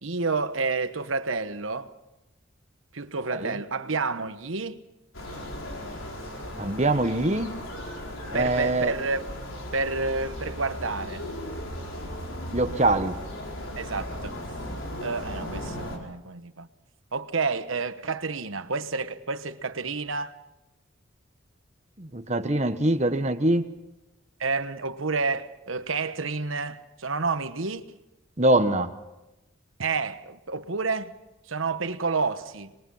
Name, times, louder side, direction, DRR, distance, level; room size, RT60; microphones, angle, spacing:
voice 1, 0.0-1.9 2.9-4.8 8.3-9.2 9.7-11.2 13.8-14.3 15.0-16.7 17.1-20.4 24.4-27.8 29.8-31.1 31.5-32.7, right 4 dB, 80° right, 1.2 m, -29 dB
sound 1, 5.1-16.0, left 1 dB, 75° left, 4.6 m, -36 dB
voice 2, 6.6-7.5 8.3-8.9 12.5-13.2 22.0-23.6 28.4-28.9, right 2 dB, 35° right, 1.2 m, -23 dB
25.0 x 22.0 x 5.7 m
head